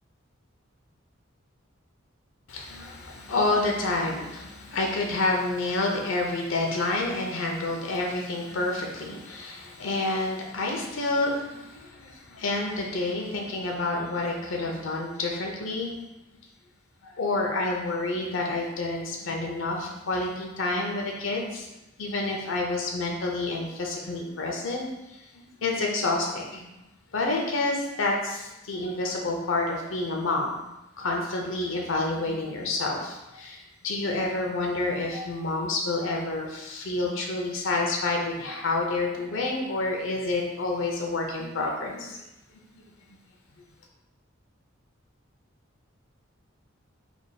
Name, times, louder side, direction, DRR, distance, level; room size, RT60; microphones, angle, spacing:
voice 1, 2.5-15.9 17.0-21.7 22.0-26.6 27.1-30.5 31.0-42.2, left 2 dB, 70° left, 0 dB, 0.6 m, -29 dB
3.4 x 2.2 x 4.0 m, 0.97 s
head